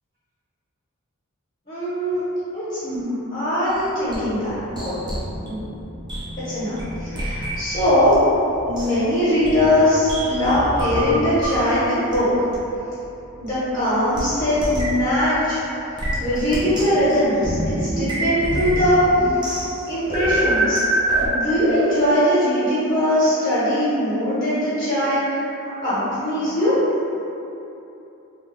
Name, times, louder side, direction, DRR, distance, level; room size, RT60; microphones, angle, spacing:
voice 1, 1.7-2.2 2.5-5.0 5.4-5.6 6.4-8.2 8.6-12.3 13.4-15.6 16.2-19.1 19.9-20.8 21.3-25.4 25.8-26.7, left 1 dB, 35° left, -13 dB, 0.9 m, -21 dB
sound 1, 3.7-8.1 8.4-11.7 12.1-12.2 12.5-12.6 13.5-13.6 14.1-14.3 14.6-15.0 16.0-21.3, right 1 dB, 20° right, 0.4 m, -26 dB
2.8 x 2.2 x 3.3 m, 2.9 s
head